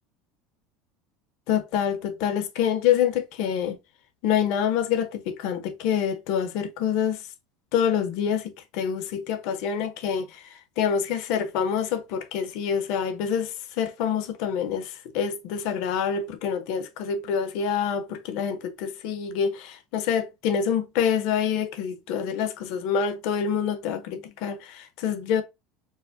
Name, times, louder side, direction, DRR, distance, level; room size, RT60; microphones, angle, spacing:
voice 1, 1.5-3.8 4.2-7.2 7.7-10.3 10.8-13.5 13.8-14.9 15.1-25.4, left 8 dB, 55° left, 0.7 m, -26 dB
4.7 x 2.1 x 2.5 m
cardioid pair, 165°, 0 cm